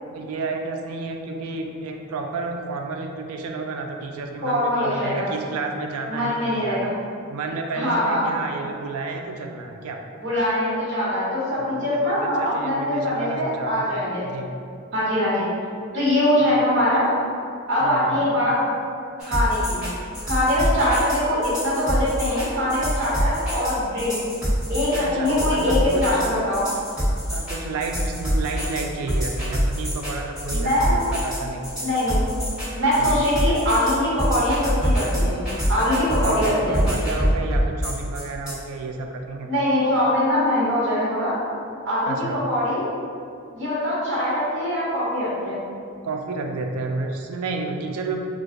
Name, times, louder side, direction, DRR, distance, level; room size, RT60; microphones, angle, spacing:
voice 1, 0.1-6.9 7.3-10.0 11.6-13.8 14.2-14.5 16.4-16.5 17.8-18.3 25.0-26.3 27.3-30.7 31.1-31.8 33.0-33.2 36.2-39.5 42.1-42.4 46.0-48.3, right 3 dB, 85° right, 3 dB, 0.3 m, -31 dB
voice 2, 4.4-5.3 6.1-6.9 7.7-8.2 10.2-14.3 14.9-15.5 15.9-17.1 17.7-18.5 19.2-19.8 20.2-24.2 24.7-26.7 30.5-31.1 31.8-32.2 32.7-35.4 35.7-36.8 39.5-41.4 41.8-42.9 43.5-45.6, left 1 dB, 55° right, -9 dB, 1.1 m, -22 dB
sound 1, 19.2-38.5, equal, 5° right, 1.2 m, -25 dB
2.4 x 2.4 x 3.8 m, 2.4 s
head